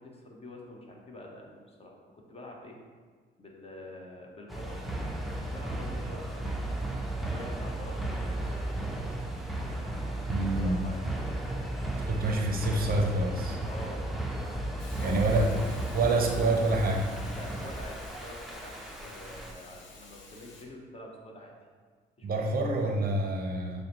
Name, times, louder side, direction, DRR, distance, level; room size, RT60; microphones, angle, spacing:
voice 1, 0.0-2.8 3.4-4.8 5.2-6.7 7.3-8.8 10.5-11.0 13.7-14.1 14.7-15.4 17.3-21.5 22.2-22.3, left 1 dB, 30° left, 0 dB, 0.7 m, -47 dB
sound 1, 4.5-19.5, right 1 dB, ahead, 0.5 m, -34 dB
voice 2, 10.3-10.9 12.0-13.6 15.0-17.1 22.2-23.8, right 2 dB, 50° right, 2 dB, 0.5 m, -27 dB
Hiss, 14.8-20.6, left 3 dB, 70° left, 0.7 m, -51 dB
6.3 x 2.1 x 2.9 m, 1.5 s
cardioid pair, 90°, 20 cm